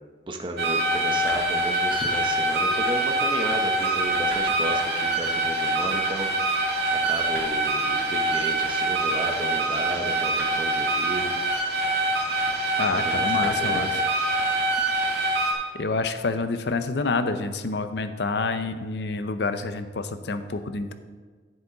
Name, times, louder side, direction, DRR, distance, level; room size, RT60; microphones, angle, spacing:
voice 1, 0.3-6.3 6.9-11.3 12.9-13.9, right 1 dB, 25° right, 3 dB, 0.9 m, -33 dB
sound 1, 0.6-15.5, right 2 dB, 65° right, 1.7 m, -25 dB
voice 2, 12.8-13.9 15.7-20.9, left 3 dB, 65° left, 10 dB, 0.6 m, -28 dB
10.5 x 7.1 x 3.9 m, 1.5 s
head